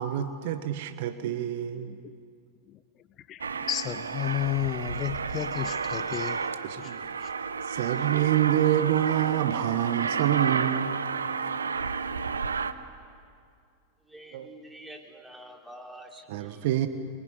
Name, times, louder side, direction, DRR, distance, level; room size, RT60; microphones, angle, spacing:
voice 1, 0.0-2.0 6.6-7.0 7.6-11.0 14.3-14.5 16.3-16.9, right 12 dB, 50° right, 10 dB, 1.3 m, -27 dB
voice 2, 3.3-6.4 6.8-6.9 7.2-7.3, left 13 dB, 30° left, 15 dB, 0.7 m, -32 dB
Aircraft, 3.4-12.7, right 5 dB, 70° right, 1.1 m, -31 dB
voice 3, 14.0-16.7, right 1 dB, 5° right, 1 dB, 4.1 m, -47 dB
25.0 x 24.0 x 9.8 m, 2.4 s
figure-of-eight pair, 90°, 0 cm